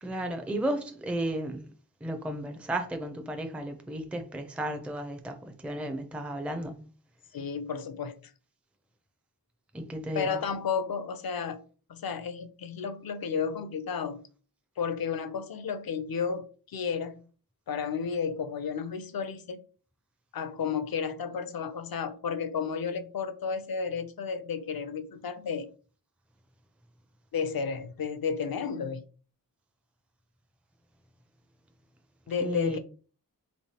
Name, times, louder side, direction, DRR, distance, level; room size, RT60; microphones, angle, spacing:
voice 1, 0.0-1.7 2.0-6.8 9.7-10.3 32.4-32.8, right 1 dB, 5° right, 0.5 m, -34 dB
voice 2, 7.3-8.3 10.1-11.6 11.9-14.3 14.8-17.2 17.7-19.6 20.3-25.7 27.3-29.0 32.3-32.8, left 6 dB, 75° left, 0.5 m, -32 dB
3.1 x 3.1 x 2.8 m
wide cardioid pair, 45°, 37 cm